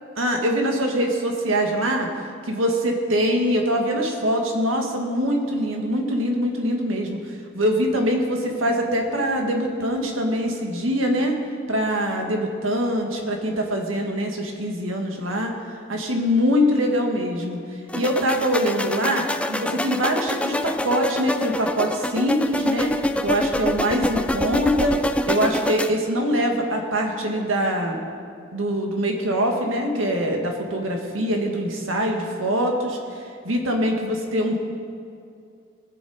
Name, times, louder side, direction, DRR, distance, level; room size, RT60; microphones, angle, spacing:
voice 1, 0.2-2.1 2.5-7.2 7.6-11.4 11.7-15.5 15.9-17.6 17.9-22.9 23.2-25.0 25.3-28.0 28.5-33.0 33.4-34.6, equal, 85° right, 2 dB, 1.8 m, -23 dB
sound 1, 17.9-25.9, left 1 dB, 5° left, 0.3 m, -26 dB
20.0 x 7.5 x 4.9 m, 2.4 s
head